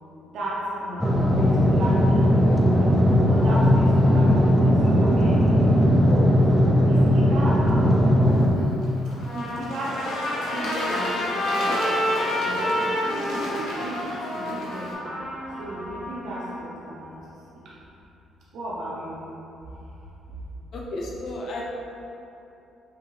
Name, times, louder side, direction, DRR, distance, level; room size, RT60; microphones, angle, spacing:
voice 1, 0.3-3.0 3.2-5.6 6.0-6.4 6.9-8.3 9.3-10.0 10.5-11.9 12.4-12.7 13.1-15.2 15.6-17.1 17.5-17.8 18.5-19.2 20.3-20.4, right 1 dB, 65° right, -6 dB, 0.7 m, -34 dB
sound 1, 1.0-8.5, equal, 5° left, 0.4 m, -18 dB
Bird / Water, 8.2-14.9, left 1 dB, 85° left, 0.9 m, -34 dB
Trumpet, 9.1-16.5, left 1 dB, 70° left, 1.4 m, -29 dB
voice 2, 20.7-21.6, left 1 dB, 50° left, -3 dB, 0.7 m, -33 dB
5.9 x 2.8 x 3.1 m, 2.9 s
cardioid pair, 155°, 0 cm